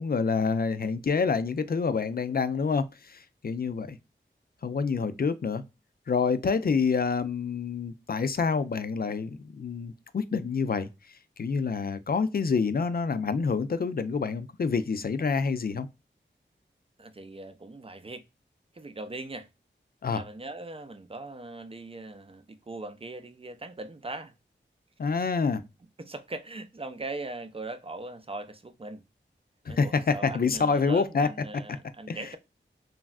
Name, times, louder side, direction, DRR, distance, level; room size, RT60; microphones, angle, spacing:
voice 1, 0.0-4.0 4.6-5.6 6.1-15.9 20.0-20.2 25.0-25.6 29.7-31.3 32.1-32.3, left 5 dB, 50° left, 0.4 m, -27 dB
voice 2, 17.0-18.2 18.7-19.5 20.1-24.3 26.0-29.0 29.7-32.4, right 2 dB, 30° right, 0.5 m, -40 dB
3.2 x 2.4 x 2.2 m
wide cardioid pair, 50°, 20 cm